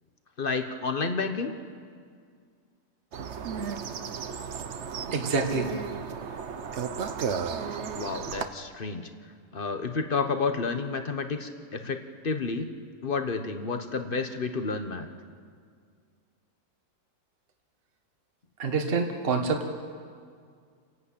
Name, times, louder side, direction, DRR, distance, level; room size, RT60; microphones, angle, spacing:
voice 1, 0.4-1.5 7.9-9.1 9.5-12.7 13.0-15.1, left 4 dB, 35° left, 7 dB, 1.1 m, -30 dB
sound 1, 3.1-8.5, right 6 dB, 50° right, 0.9 m, -34 dB
voice 2, 5.1-5.7 18.6-19.6, right 4 dB, 35° right, 3 dB, 1.6 m, -26 dB
30.0 x 11.5 x 8.6 m, 2.1 s
omnidirectional pair, 2.0 m